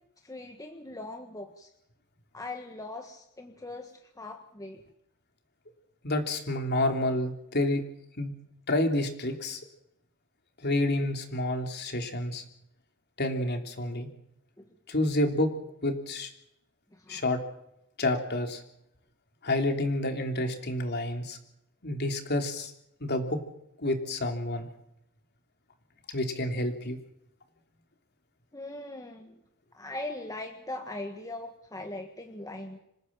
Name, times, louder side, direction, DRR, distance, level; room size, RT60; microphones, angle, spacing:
voice 1, 0.2-1.7 2.3-4.8 14.6-14.7 16.9-17.2 28.5-29.4 29.7-32.8, left 2 dB, 15° left, 4 dB, 1.6 m, -40 dB
voice 2, 6.0-7.8 8.2-8.3 8.7-9.6 10.6-12.4 13.2-14.1 14.9-15.5 15.8-16.3 17.1-17.4 18.0-18.6 19.4-21.4 21.8-22.7 23.0-23.4 23.8-24.7 26.1-27.0, left 1 dB, 50° left, 4 dB, 3.3 m, -29 dB
26.5 x 16.0 x 7.5 m, 0.80 s
head